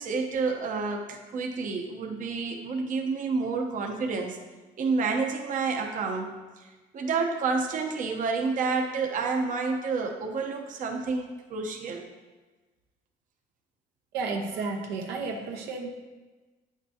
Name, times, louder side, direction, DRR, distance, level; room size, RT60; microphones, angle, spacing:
voice 1, 0.0-4.4 4.8-12.0, right 4 dB, 50° right, 2 dB, 0.8 m, -29 dB
voice 2, 14.1-15.9, right 4 dB, 85° right, 1 dB, 1.0 m, -32 dB
8.9 x 6.0 x 2.8 m, 1.2 s
cardioid pair, 110°, 17 cm